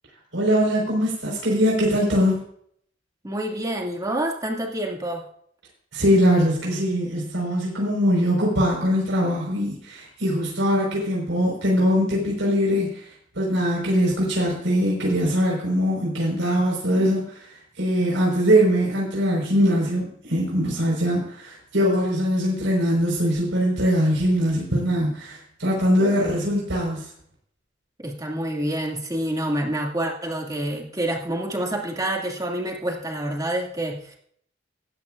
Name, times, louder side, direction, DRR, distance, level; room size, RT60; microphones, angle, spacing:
voice 1, 0.3-2.4 5.9-27.1, equal, 80° right, -3 dB, 4.8 m, -22 dB
voice 2, 3.2-5.2 28.0-34.2, right 1 dB, 20° right, -1 dB, 2.3 m, -27 dB
16.5 x 14.0 x 2.5 m, 0.65 s
head